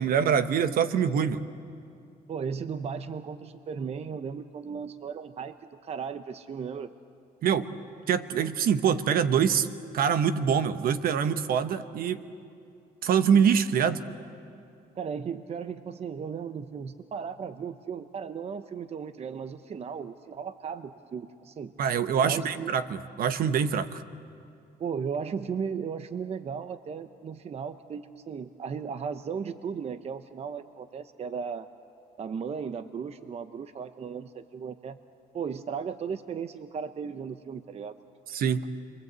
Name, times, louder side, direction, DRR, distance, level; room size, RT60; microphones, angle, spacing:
voice 1, 0.0-1.4 7.4-7.7 8.1-9.7 9.9-12.2 13.0-14.0 21.8-24.0 38.3-38.6, right 7 dB, 60° right, 11 dB, 1.1 m, -24 dB
voice 2, 2.3-5.5 5.8-6.9 15.0-21.7 22.2-22.7 24.8-31.7 32.2-35.0 35.3-38.0, right 6 dB, 40° right, 10 dB, 0.8 m, -36 dB
30.0 x 23.0 x 8.2 m, 2.5 s
cardioid pair, 110°, 17 cm